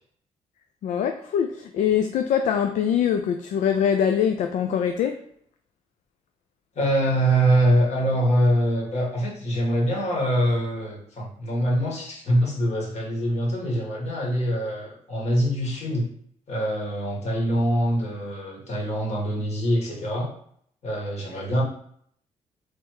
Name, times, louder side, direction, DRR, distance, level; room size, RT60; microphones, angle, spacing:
voice 1, 0.8-5.2, left 8 dB, 75° left, 6 dB, 0.4 m, -23 dB
voice 2, 6.7-16.1 16.5-20.3 20.8-21.6, right 1 dB, 60° left, -3 dB, 1.7 m, -24 dB
3.3 x 3.0 x 4.7 m, 0.65 s
cardioid pair, 105°, 13 cm